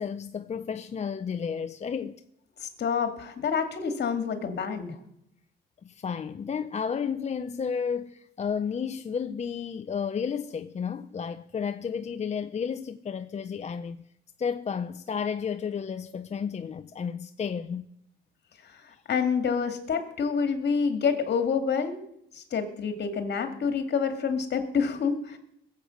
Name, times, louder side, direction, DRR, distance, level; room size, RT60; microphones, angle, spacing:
voice 1, 0.0-2.2 4.4-4.5 5.8-14.0 14.4-17.9 18.9-19.0, left 6 dB, 35° left, 0.6 m, -32 dB
voice 2, 2.6-5.0 18.6-22.0 22.3-25.4, left 6 dB, 55° left, 2.4 m, -28 dB
20.0 x 8.1 x 6.5 m
cardioid pair, 90°, 20 cm